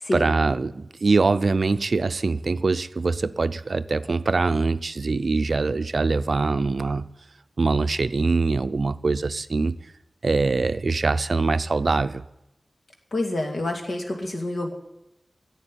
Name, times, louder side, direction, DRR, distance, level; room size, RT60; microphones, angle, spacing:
voice 1, 0.1-7.1 7.6-9.8 10.2-12.2, right 3 dB, 60° right, 12 dB, 0.5 m, -23 dB
voice 2, 13.1-14.7, left 1 dB, 70° left, 2 dB, 2.3 m, -27 dB
11.5 x 8.2 x 9.9 m, 0.90 s
wide cardioid pair, 85°, 0 cm